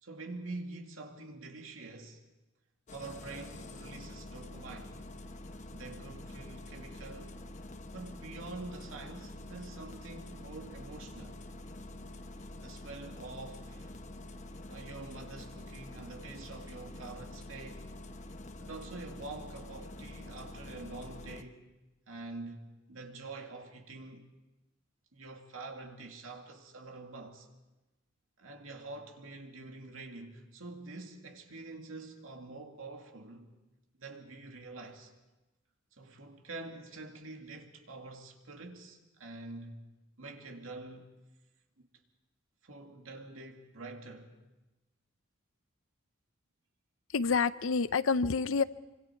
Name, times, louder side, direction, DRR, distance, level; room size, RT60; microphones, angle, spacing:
voice 1, 0.0-2.2 2.9-5.0 5.7-7.4 7.9-11.4 12.6-13.9 14.7-17.9 18.6-21.6 22.1-24.3 25.1-27.5 28.4-33.5 34.0-35.1 36.0-39.8 40.2-41.1 41.8-41.9 42.6-44.3, right 3 dB, 85° right, 2.5 m, -46 dB
Engine starting, 2.9-21.4, left 1 dB, 35° left, 1.1 m, -47 dB
voice 2, 47.1-48.6, left 5 dB, 80° left, 0.6 m, -28 dB
25.5 x 25.0 x 4.6 m
head